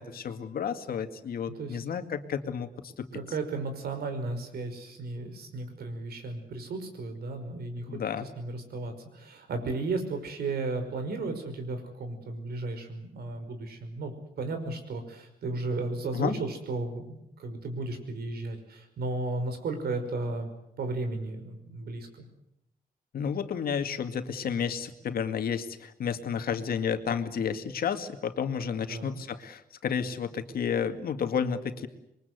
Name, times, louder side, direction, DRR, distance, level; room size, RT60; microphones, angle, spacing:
voice 1, 0.0-3.1 7.9-8.3 16.1-16.3 23.1-31.9, left 7 dB, 70° left, 7 dB, 2.1 m, -31 dB
voice 2, 3.1-20.5 20.8-22.1 28.9-29.2, right 3 dB, 90° right, 7 dB, 5.4 m, -34 dB
27.0 x 23.0 x 8.1 m, 0.80 s
wide cardioid pair, 175°, 16 cm